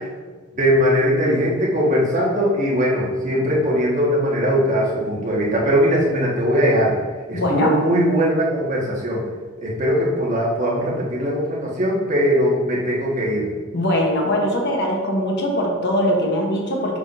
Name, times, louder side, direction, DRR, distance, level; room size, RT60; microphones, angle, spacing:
voice 1, 0.6-6.9 7.3-9.2 9.6-13.5, equal, 35° right, -5 dB, 1.5 m, -20 dB
voice 2, 7.3-7.7 13.7-17.0, equal, 55° left, 0 dB, 1.0 m, -21 dB
6.5 x 5.7 x 2.6 m, 1.4 s
head